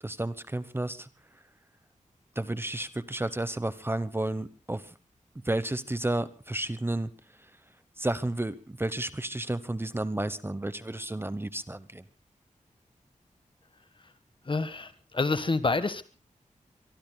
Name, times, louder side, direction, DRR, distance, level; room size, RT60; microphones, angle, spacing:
voice 1, 0.0-1.1 2.4-4.9 5.4-7.1 8.0-12.0, right 1 dB, 15° right, 14 dB, 1.0 m, -32 dB
voice 2, 14.4-16.0, left 3 dB, 40° left, 12 dB, 1.6 m, -28 dB
24.0 x 23.5 x 2.3 m, 0.34 s
wide cardioid pair, 105°, 14 cm